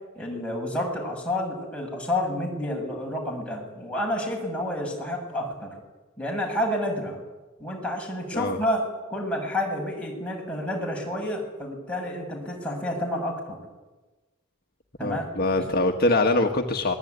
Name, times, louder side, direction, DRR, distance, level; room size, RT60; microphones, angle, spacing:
voice 1, 0.2-5.8 6.2-7.2 7.6-13.6 15.0-15.7, left 1 dB, 5° left, -1 dB, 7.4 m, -29 dB
voice 2, 15.0-16.9, left 2 dB, 50° left, 3 dB, 1.7 m, -23 dB
26.5 x 21.0 x 9.7 m, 1.2 s
head